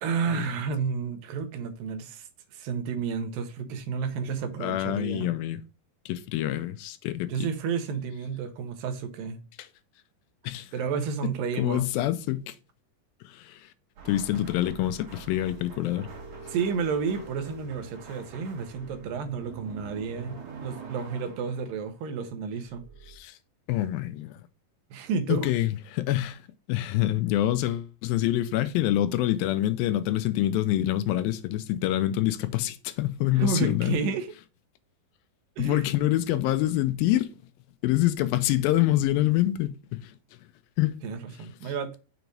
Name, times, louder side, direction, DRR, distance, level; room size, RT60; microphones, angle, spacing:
voice 1, 0.0-5.3 7.3-9.4 10.7-11.9 16.4-22.8 24.9-25.5 33.3-34.3 35.6-35.9 41.0-42.0, right 6 dB, 75° right, 2.5 m, -31 dB
voice 2, 4.6-5.6 6.1-7.5 9.6-9.7 10.4-10.7 11.6-12.6 13.2-13.7 14.1-16.1 23.1-23.4 23.7-24.3 25.3-26.4 26.7-34.0 35.6-37.4 37.8-40.1 40.8-41.0, left 14 dB, 85° left, 2.4 m, -26 dB
sound 1, 14.0-22.2 22.7-23.2, right 4 dB, 60° right, 3.2 m, -44 dB
6.9 x 3.1 x 5.2 m
omnidirectional pair, 4.1 m